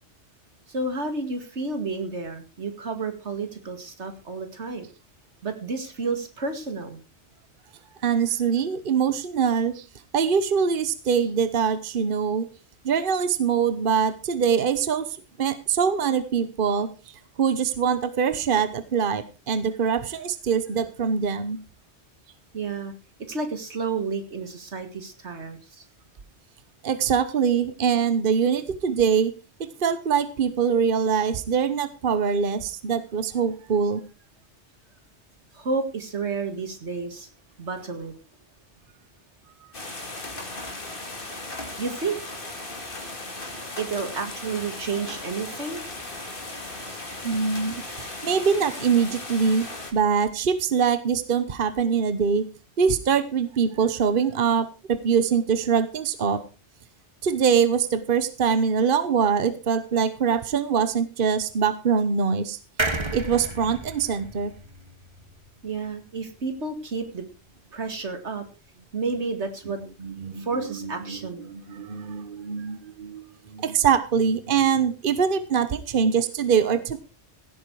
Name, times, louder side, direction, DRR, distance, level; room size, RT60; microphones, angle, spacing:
voice 1, 0.7-4.8 5.4-7.0 22.5-22.9 23.3-25.9 35.5-37.3 37.6-38.1 41.8-42.2 43.8-45.8 65.6-67.3 67.7-68.4 68.9-69.8 70.4-71.5, right 4 dB, 90° right, 7 dB, 2.4 m, -31 dB
voice 2, 8.0-9.8 10.1-12.5 12.8-16.9 17.4-21.6 26.8-29.3 29.6-34.0 47.2-49.7 49.9-52.4 52.8-56.4 57.2-62.6 63.1-64.5 70.0-71.2 71.4-77.0, right 6 dB, 55° right, 12 dB, 1.1 m, -23 dB
sound 1, 39.7-49.9, left 2 dB, 50° left, 2.4 m, -37 dB
sound 2, 62.8-66.3 66.7-66.8 67.0-67.1, right 2 dB, 25° right, 1.5 m, -32 dB
16.0 x 8.9 x 4.7 m, 0.32 s
omnidirectional pair, 1.1 m